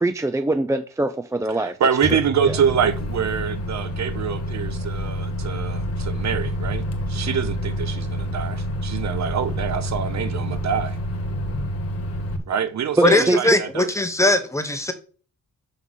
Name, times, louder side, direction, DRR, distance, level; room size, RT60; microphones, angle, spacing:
voice 1, 0.0-1.8 2.4-2.5 13.1-13.4, right 2 dB, 10° right, 0.4 m, -23 dB
voice 2, 1.5-11.0 12.5-13.9, right 7 dB, 60° right, 1.1 m, -25 dB
Microwave oven, 2.0-12.4, equal, 50° left, 1.4 m, -28 dB
voice 3, 13.0-14.9, left 1 dB, 10° left, 1.1 m, -19 dB
6.0 x 5.4 x 6.3 m
wide cardioid pair, 150°, 32 cm